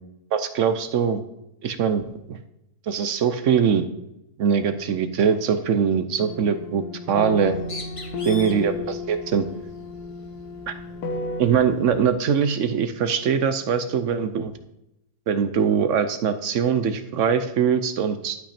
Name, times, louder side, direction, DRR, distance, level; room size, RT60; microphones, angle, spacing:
voice 1, 0.3-1.2 1.6-2.0 2.3-2.4 2.9-3.8 4.4-7.6 8.3-9.4 10.7-10.8 11.4-14.5 15.3-18.4, right 7 dB, 60° right, 10 dB, 0.8 m, -22 dB
sound 1, 6.2-11.4, left 2 dB, 75° left, 1.4 m, -33 dB
Bird, 7.3-12.1, left 2 dB, 25° left, 1.0 m, -43 dB
11.5 x 5.8 x 4.3 m, 0.85 s
omnidirectional pair, 1.7 m